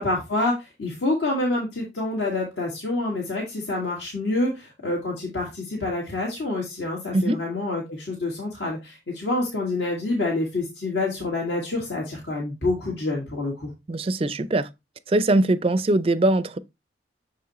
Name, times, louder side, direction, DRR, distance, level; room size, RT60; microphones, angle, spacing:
voice 1, 0.0-13.7, left 2 dB, 70° left, 1.9 m, -27 dB
voice 2, 13.9-14.7 15.1-16.6, right 2 dB, 30° right, 0.4 m, -21 dB
6.7 x 4.7 x 3.0 m
head